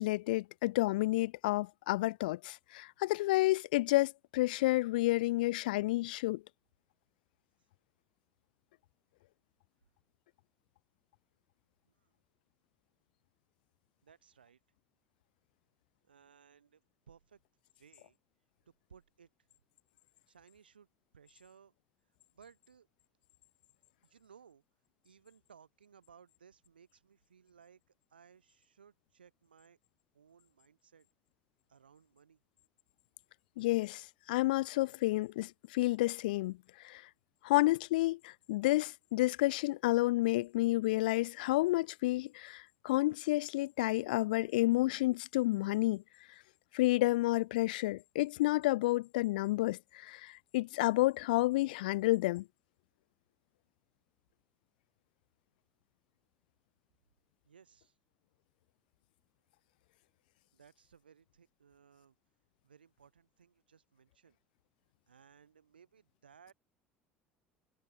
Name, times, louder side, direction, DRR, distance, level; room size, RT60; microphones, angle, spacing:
voice 1, 0.0-6.4 33.6-36.6 36.8-37.0 37.4-46.0 46.7-52.5, left 18 dB, 65° left, 0.3 m, -30 dB
voice 2, 11.9-12.2 14.0-14.6 16.0-16.8 17.1-17.4 17.8-18.2 18.6-19.3 20.3-20.9 21.1-21.7 22.3-22.9 24.0-24.6 25.0-29.8 30.1-31.1 31.7-32.4 57.4-58.0 60.5-62.1 62.6-64.4 65.1-66.5, right 7 dB, 80° right, 6.7 m, -61 dB
figure-of-eight pair, 65°, 5 cm